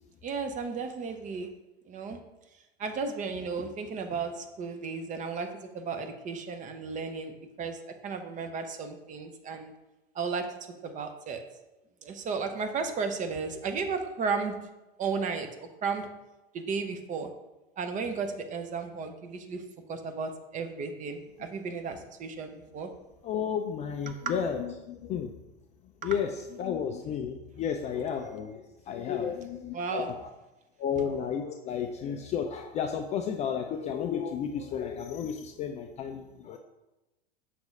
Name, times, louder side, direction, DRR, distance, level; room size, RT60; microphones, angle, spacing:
voice 1, 0.2-1.5 1.9-2.2 2.8-7.3 7.6-9.7 10.1-10.5 10.8-11.4 12.0-14.6 15.0-16.1 16.5-17.3 17.8-19.6 19.9-22.9 24.1-24.2 26.0-26.1 29.7-30.1, right 5 dB, 25° right, 6 dB, 0.7 m, -34 dB
voice 2, 23.2-25.3 26.0-30.3 30.8-36.6, left 7 dB, 20° left, 5 dB, 0.3 m, -32 dB
6.1 x 3.3 x 5.2 m, 1.0 s
figure-of-eight pair, 85°, 31 cm